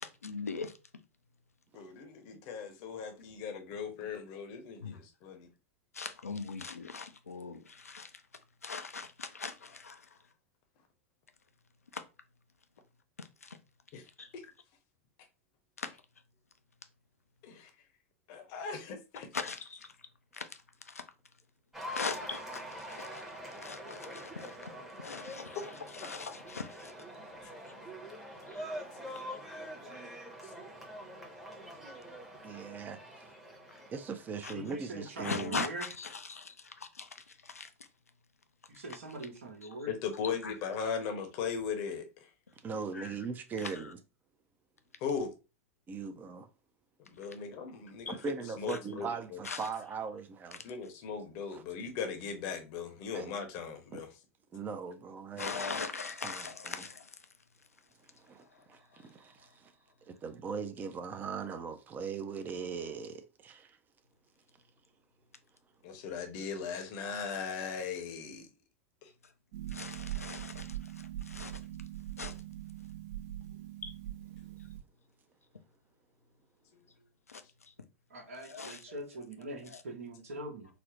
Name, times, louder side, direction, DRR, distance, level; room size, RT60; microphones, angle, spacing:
voice 1, 0.0-0.7 4.8-5.0 5.9-8.1 8.6-10.1 11.9-12.0 13.2-13.6 14.2-14.3 15.8-15.9 19.3-19.9 20.3-20.5 20.9-21.0 21.9-24.7 25.0-25.7 26.0-26.9 28.5-28.6 34.4-34.5 35.2-37.7 38.9-39.0 40.4-40.5 42.9-43.1 43.6-43.8 48.1-48.2 48.7-48.8 49.4-49.7 55.4-57.1 69.7-71.6 72.2-72.4 73.8-73.9 77.3-77.4 78.3-79.2 79.6-79.8, left 4 dB, 85° left, 0.4 m, -41 dB
voice 2, 1.7-5.5 13.9-14.0 14.4-14.5 17.4-17.7 18.3-19.3 25.4-26.1 29.9-30.1 30.4-30.5 39.9-42.1 45.0-45.3 47.1-48.2 48.6-49.4 50.6-54.1 65.8-68.5 69.0-69.1, left 6 dB, 45° left, 0.7 m, -38 dB
Cheering / Applause, 21.7-35.1, equal, 5° right, 0.8 m, -45 dB
voice 3, 32.4-33.3 33.9-35.7 42.6-44.0 45.9-46.5 48.1-50.6 51.5-51.6 53.1-53.3 53.9-54.0 54.5-55.9 56.2-56.9 58.2-59.7 60.1-63.8, right 5 dB, 25° right, 0.4 m, -40 dB
voice 4, 34.5-35.8 38.8-39.9 78.1-80.7, right 1 dB, 70° right, 1.0 m, -43 dB
Harp, 69.5-74.8, right 13 dB, 50° right, 0.8 m, -42 dB
4.0 x 2.0 x 2.9 m
figure-of-eight pair, 95°, 8 cm